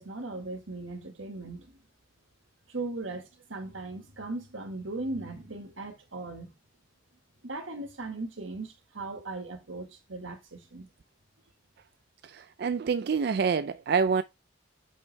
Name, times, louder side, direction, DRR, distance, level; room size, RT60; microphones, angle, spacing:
voice 1, 0.0-1.8 2.7-6.6 7.4-10.9, right 2 dB, 90° right, 1.7 m, -38 dB
voice 2, 12.2-14.2, right 5 dB, 55° right, 0.4 m, -27 dB
6.6 x 5.4 x 3.3 m
head